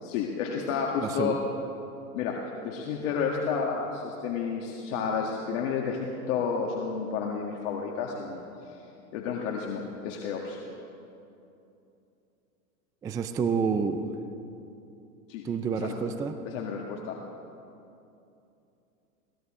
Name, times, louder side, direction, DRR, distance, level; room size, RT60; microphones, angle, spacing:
voice 1, 0.0-1.4 2.1-8.5 9.1-10.6 15.3-15.4 15.8-15.9 16.5-17.2, left 6 dB, 55° left, -1 dB, 1.9 m, -31 dB
voice 2, 1.0-1.4 13.0-14.1 15.4-16.3, right 5 dB, 10° right, 9 dB, 0.3 m, -28 dB
21.5 x 18.0 x 3.7 m, 2.8 s
hypercardioid pair, 110°, 44 cm